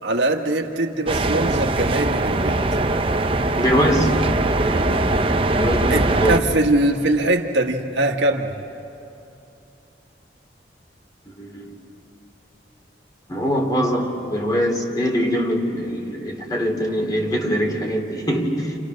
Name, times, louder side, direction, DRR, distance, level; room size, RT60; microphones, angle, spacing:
voice 1, 0.0-2.7 5.9-8.6, right 1 dB, 85° right, 3 dB, 1.7 m, -22 dB
sound 1, 1.1-6.4, right 2 dB, 30° right, 0.8 m, -21 dB
voice 2, 3.6-4.2 4.6-6.4 11.4-11.8 13.3-18.8, equal, 20° left, 1 dB, 2.9 m, -23 dB
29.5 x 29.0 x 6.5 m, 2.8 s
head